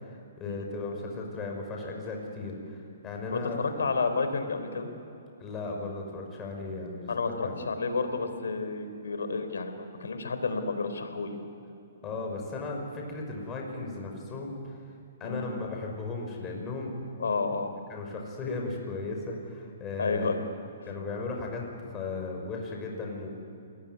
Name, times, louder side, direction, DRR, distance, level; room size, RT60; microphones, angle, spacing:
voice 1, 0.0-2.8 3.0-3.6 5.4-7.1 7.4-7.6 12.0-14.8 15.2-17.0 17.9-20.3 20.9-23.3, left 3 dB, 20° left, 1 dB, 5.9 m, -36 dB
voice 2, 3.3-4.9 7.1-11.4 15.2-15.5 17.2-17.7 20.0-20.4 20.8-20.9, left 4 dB, 75° left, 8 dB, 4.0 m, -30 dB
28.0 x 21.0 x 9.6 m, 2.7 s
hypercardioid pair, 130°, 0 cm